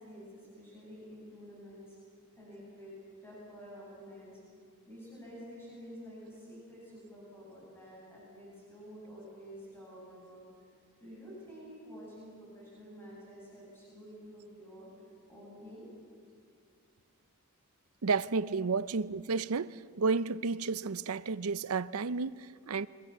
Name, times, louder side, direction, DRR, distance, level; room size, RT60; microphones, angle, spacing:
voice 1, 0.0-2.0 2.3-4.3 4.9-10.5 11.0-15.9 18.4-18.5, equal, 10° left, 7.9 m, -49 dB
voice 2, 18.0-22.9, right 4 dB, 75° right, 0.6 m, -32 dB
28.5 x 24.5 x 7.2 m
head